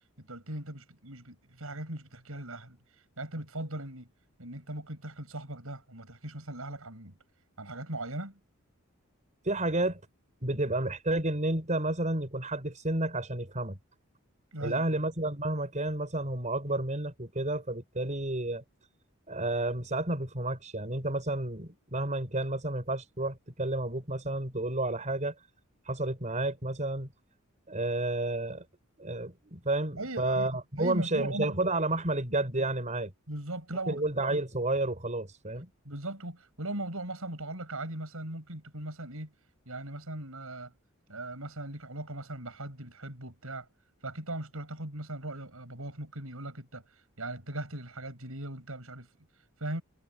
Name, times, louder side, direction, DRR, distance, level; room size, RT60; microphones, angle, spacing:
voice 1, 0.2-2.8 3.2-4.1 4.4-7.2 7.6-8.4 14.5-14.8 30.0-31.6 32.6-32.7 33.3-34.0 34.3-34.4 35.8-39.3 39.7-40.7 41.1-43.7 44.0-49.1 49.6-49.8, right 1 dB, 70° right, 6.5 m, -39 dB
voice 2, 9.4-10.0 10.4-13.8 14.6-18.6 19.3-25.3 25.9-27.1 27.7-28.7 29.0-33.1 33.9-35.7, right 2 dB, 35° right, 5.7 m, -31 dB
head